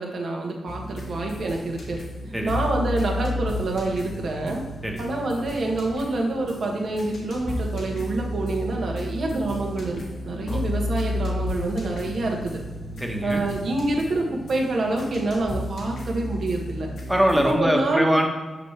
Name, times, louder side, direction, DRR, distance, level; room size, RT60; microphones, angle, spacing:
voice 1, 0.0-2.0 2.4-4.6 5.0-12.6 13.2-16.9 17.4-18.1, right 2 dB, 65° right, 0 dB, 1.4 m, -27 dB
sound 1, 0.7-17.5, left 1 dB, 75° left, 1.5 m, -33 dB
voice 2, 13.0-13.4 17.1-18.3, equal, 5° right, 2 dB, 1.2 m, -22 dB
6.6 x 5.6 x 3.3 m, 1.2 s
cardioid pair, 60°, 0 cm